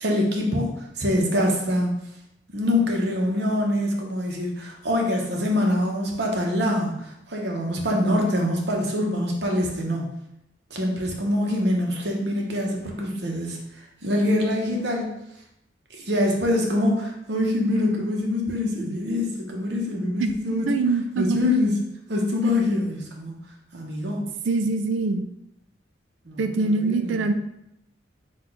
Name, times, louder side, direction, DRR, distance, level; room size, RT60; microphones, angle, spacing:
voice 1, 0.0-1.9 2.5-10.1 10.7-15.1 15.9-20.7 21.2-21.7 22.1-23.3 23.7-24.2 26.2-27.3, left 1 dB, 60° right, 0 dB, 0.9 m, -24 dB
voice 2, 20.7-21.4 24.5-25.3 26.4-27.3, right 3 dB, 80° right, 8 dB, 0.4 m, -23 dB
4.2 x 2.4 x 4.4 m, 0.81 s
head